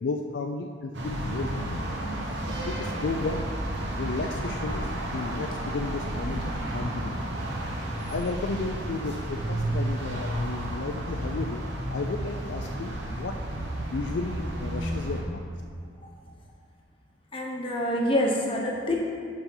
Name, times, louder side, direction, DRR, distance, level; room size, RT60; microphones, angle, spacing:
voice 1, 0.0-1.9 2.5-3.4 4.0-7.3 8.1-11.6 11.9-13.3 13.9-15.4, left 3 dB, 60° left, 3 dB, 0.4 m, -33 dB
sound 1, 0.9-15.2, right 1 dB, 60° right, 1.2 m, -32 dB
voice 2, 17.3-18.9, left 1 dB, 30° left, -2 dB, 1.1 m, -26 dB
7.2 x 5.2 x 5.4 m, 2.2 s
head